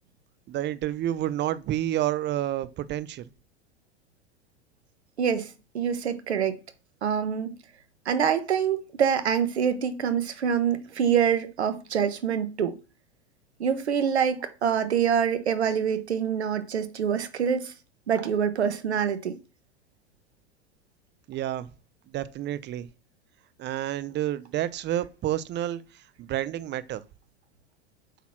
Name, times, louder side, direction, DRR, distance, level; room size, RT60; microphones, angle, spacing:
voice 1, 0.5-3.2 21.3-21.7 22.1-22.9 23.6-25.8 26.2-27.0, right 13 dB, 35° right, 0.8 m, -29 dB
voice 2, 5.2-6.6 7.0-7.5 8.0-12.8 13.6-17.7 18.1-19.4, right 7 dB, 80° right, 1.4 m, -25 dB
7.9 x 4.2 x 6.0 m
hypercardioid pair, 95°, 32 cm